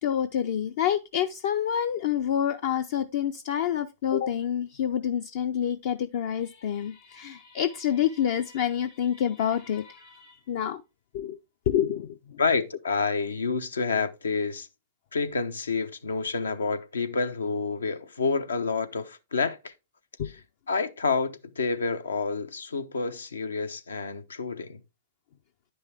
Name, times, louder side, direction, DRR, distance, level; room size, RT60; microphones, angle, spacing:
voice 1, 0.0-10.8 11.1-11.4 11.7-12.4 20.2-20.3, left 9 dB, 60° left, 0.5 m, -28 dB
voice 2, 12.4-14.7 15.1-19.7 20.2-20.4 20.7-24.8, left 4 dB, 85° left, 0.8 m, -28 dB
9.9 x 5.5 x 3.4 m
hypercardioid pair, 110°, 0 cm